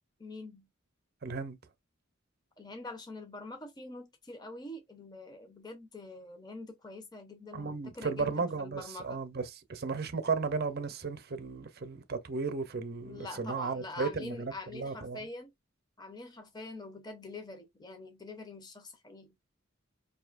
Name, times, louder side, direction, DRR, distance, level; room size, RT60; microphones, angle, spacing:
voice 1, 0.2-0.7 2.6-9.2 13.0-15.5 16.0-19.3, left 2 dB, 20° left, 0.7 m, -45 dB
voice 2, 1.2-1.6 7.5-15.2, right 4 dB, 50° right, 0.6 m, -35 dB
4.8 x 2.7 x 2.4 m
head